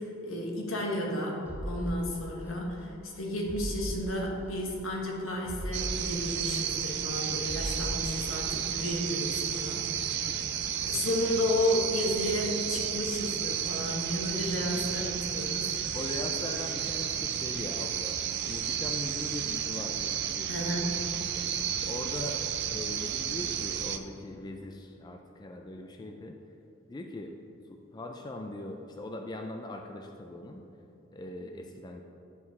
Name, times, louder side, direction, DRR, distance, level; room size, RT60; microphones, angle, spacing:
voice 1, 0.0-10.3 10.9-16.0 20.5-21.0, left 1 dB, 75° left, -1 dB, 1.3 m, -32 dB
sound 1, 1.5-2.8 3.1-3.2 3.5-4.8 5.1-5.2 5.5-7.2 7.5-8.8 9.1-9.2, equal, 10° right, 0.7 m, -39 dB
sound 2, 5.7-24.0, right 9 dB, 55° right, 0.4 m, -32 dB
voice 2, 15.9-18.2 18.5-20.8 21.2-22.4 22.7-26.4 26.9-27.3 27.7-30.6 31.1-32.0, left 2 dB, 20° left, 3 dB, 0.3 m, -40 dB
10.5 x 4.6 x 4.1 m, 2.8 s
head